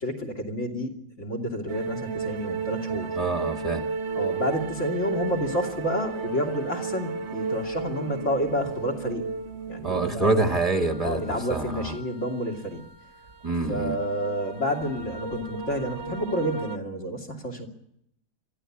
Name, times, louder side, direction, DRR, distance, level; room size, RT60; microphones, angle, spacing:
voice 1, 0.0-3.2 4.1-9.3 9.7-10.5 11.0-12.8 13.7-17.7, equal, 45° left, 6 dB, 3.1 m, -30 dB
sound 1, 1.7-16.8, right 5 dB, 45° right, 1.4 m, -34 dB
voice 2, 3.2-3.8 9.8-12.0 13.4-14.0, right 3 dB, 25° right, 6 dB, 1.4 m, -26 dB
22.5 x 14.5 x 8.7 m, 0.76 s
omnidirectional pair, 1.8 m